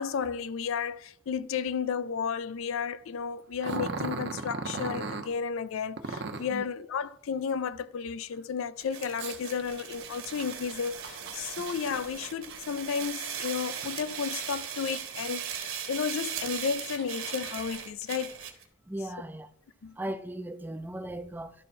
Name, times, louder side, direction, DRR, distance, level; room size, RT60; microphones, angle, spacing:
voice 1, 0.0-18.4 19.8-19.9, left 6 dB, 75° left, 0.4 m, -33 dB
Growling, 3.6-5.3 6.0-6.6 9.2-14.0 14.4-15.2 15.8-15.9 16.5-17.5, right 3 dB, 55° right, 0.8 m, -38 dB
sound 1, 8.8-18.6, right 8 dB, 80° right, 1.4 m, -38 dB
voice 2, 18.9-19.5 20.0-21.5, right 1 dB, 10° right, 0.4 m, -37 dB
11.5 x 4.4 x 4.2 m
head